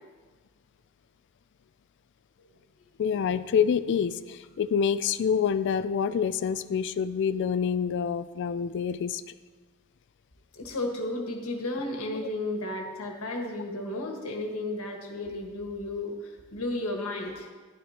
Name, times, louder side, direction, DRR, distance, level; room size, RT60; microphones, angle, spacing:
voice 1, 3.0-9.2, left 7 dB, 55° left, 14 dB, 0.3 m, -27 dB
voice 2, 10.5-17.5, left 2 dB, 75° left, 1 dB, 1.6 m, -33 dB
13.0 x 11.0 x 2.9 m, 1.4 s
head